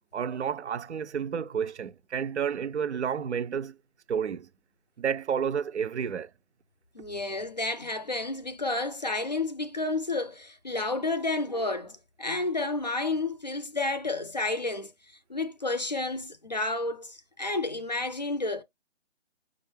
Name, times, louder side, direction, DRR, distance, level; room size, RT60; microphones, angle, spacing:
voice 1, 0.1-3.8 4.1-4.5 5.0-6.3, right 7 dB, 75° right, 0.5 m, -30 dB
voice 2, 6.9-14.9 15.3-18.6, left 2 dB, 40° left, 0.5 m, -31 dB
5.4 x 2.4 x 3.2 m
hypercardioid pair, 170°, 35 cm